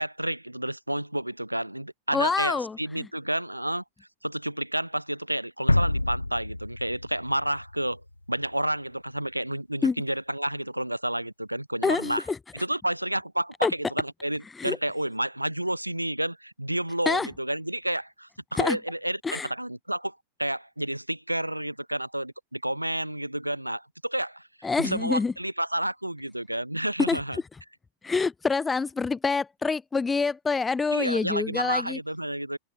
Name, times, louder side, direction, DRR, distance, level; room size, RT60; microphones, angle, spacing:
voice 1, 0.0-3.8 4.2-8.0 8.3-12.2 12.5-24.5 24.8-27.4 30.9-32.6, right 1 dB, 85° right, 0.5 m, -30 dB
voice 2, 2.1-3.1 9.8-10.0 11.8-12.4 13.6-13.7 14.6-14.8 17.1-17.3 18.6-18.8 19.2-19.5 24.6-25.3 27.1-27.2 28.0-32.0, left 4 dB, 15° left, 0.3 m, -26 dB
sound 1, 5.7-8.5, left 2 dB, 85° left, 1.0 m, -27 dB
figure-of-eight pair, 90°, 0 cm